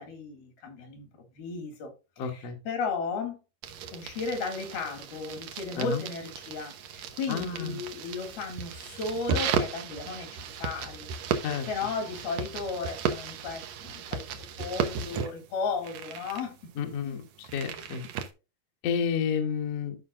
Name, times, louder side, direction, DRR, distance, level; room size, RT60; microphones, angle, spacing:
voice 1, 0.0-3.4 3.9-16.7 17.0-17.2, left 4 dB, 75° left, 4.0 m, -35 dB
voice 2, 2.2-2.6 5.8-6.0 7.3-7.8 11.4-11.7 16.8-18.0 18.8-20.0, left 7 dB, 55° left, 1.9 m, -30 dB
sound 1, 3.6-18.3, right 6 dB, 75° right, 1.7 m, -35 dB
14.0 x 5.6 x 2.6 m
omnidirectional pair, 4.5 m